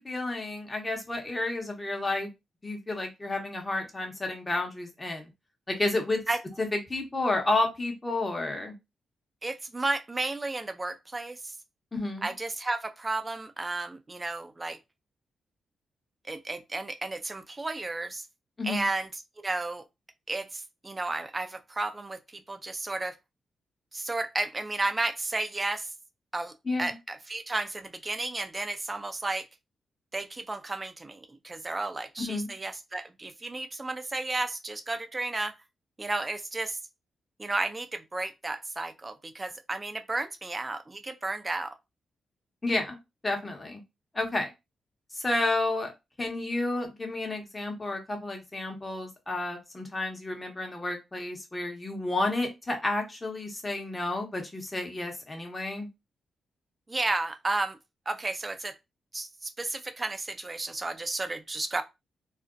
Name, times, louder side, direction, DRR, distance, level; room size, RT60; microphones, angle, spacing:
voice 1, 0.0-2.3 2.6-5.3 5.7-6.2 6.6-8.7 11.9-12.3 18.6-18.9 26.6-27.0 32.2-32.5 42.6-43.0 43.2-43.8 44.1-44.5 45.1-45.9 46.2-55.9, left 2 dB, 25° left, 1.0 m, -31 dB
voice 2, 9.4-11.5 12.2-14.8 16.3-18.2 18.6-19.1 19.4-19.8 20.3-23.2 23.9-25.9 26.3-26.5 26.8-29.5 30.1-35.5 36.0-36.8 37.4-41.7 56.9-57.8 58.1-58.7 59.1-61.8, right 2 dB, 30° right, 0.4 m, -33 dB
2.5 x 2.1 x 2.5 m
supercardioid pair, 50°, 0 cm